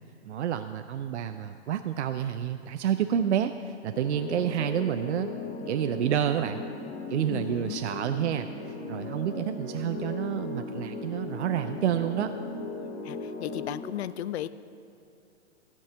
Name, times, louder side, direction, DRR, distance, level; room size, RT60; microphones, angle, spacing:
voice 1, 0.3-5.3 5.6-6.6 7.1-12.3, right 9 dB, 70° right, 8 dB, 0.6 m, -29 dB
sound 1, 3.9-13.8, left 3 dB, 45° left, 2.0 m, -37 dB
voice 2, 7.3-7.8 13.0-14.5, left 11 dB, 65° left, 15 dB, 0.5 m, -35 dB
15.0 x 5.4 x 7.7 m, 2.7 s
hypercardioid pair, 145°, 36 cm